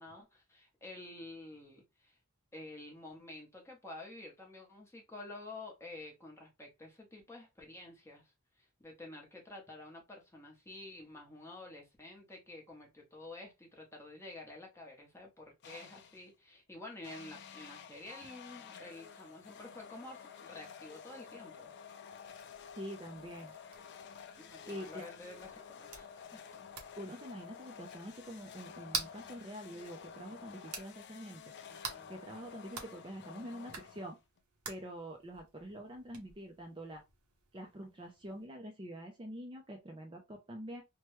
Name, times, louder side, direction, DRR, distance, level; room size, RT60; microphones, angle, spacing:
voice 1, 0.0-2.2 2.5-21.7 24.4-26.4 31.7-32.2, left 2 dB, 10° left, 0.8 m, -50 dB
sound 1, 15.6-16.3 17.0-34.4, left 7 dB, 50° left, 0.3 m, -51 dB
sound 2, 22.1-38.5, right 5 dB, 90° right, 0.9 m, -49 dB
voice 2, 22.7-23.5 24.6-25.1 27.0-31.4 32.1-34.2 34.7-37.0 37.5-40.8, equal, 20° right, 0.5 m, -46 dB
3.0 x 2.2 x 3.1 m
head